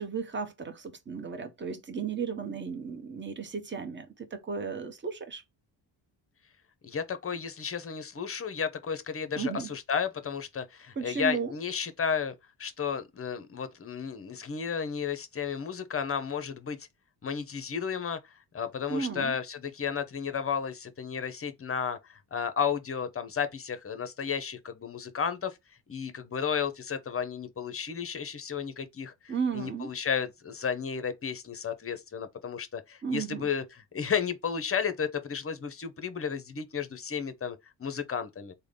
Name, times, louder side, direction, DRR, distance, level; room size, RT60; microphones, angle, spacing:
voice 1, 0.0-5.4 9.4-9.7 11.0-11.5 18.9-19.4 29.3-29.9 33.0-33.5, right 6 dB, 25° right, 0.9 m, -34 dB
voice 2, 6.8-16.8 17.2-25.6 25.9-38.5, left 7 dB, 30° left, 0.8 m, -33 dB
3.6 x 2.2 x 3.3 m
cardioid pair, 85°, 45 cm